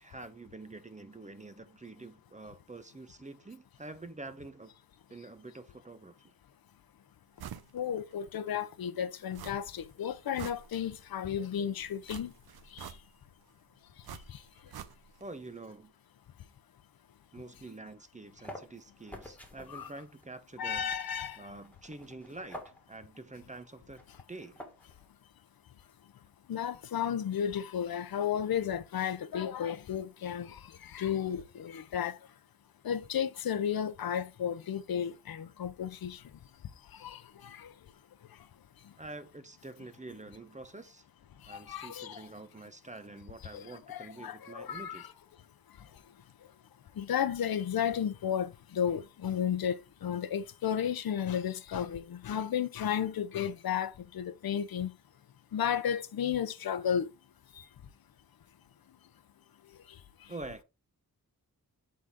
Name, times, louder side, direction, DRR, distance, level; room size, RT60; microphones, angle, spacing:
voice 1, 0.0-4.7 5.1-6.3 15.2-15.9 17.3-20.9 21.4-22.6 22.9-24.0 24.3-24.6 39.0-41.0 41.5-45.1 60.3-60.6, right 2 dB, 20° right, 0.8 m, -47 dB
sound 1, 7.4-7.7 8.1-8.2 9.3-9.8 10.2-11.1 12.1-13.3 14.0-15.3 15.6-15.7, right 9 dB, 85° right, 0.7 m, -46 dB
voice 2, 7.7-12.3 12.7-12.9 14.3-14.4 19.7-19.9 20.6-21.4 26.5-32.2 32.8-36.2 37.0-37.7 41.5-42.2 43.5-43.6 43.9-45.1 47.0-54.9 55.5-57.1 57.6-57.7, left 8 dB, 75° left, 0.8 m, -33 dB
sound 2, 18.0-25.1, equal, 5° left, 1.8 m, -51 dB
7.7 x 4.1 x 3.6 m
wide cardioid pair, 105°, 36 cm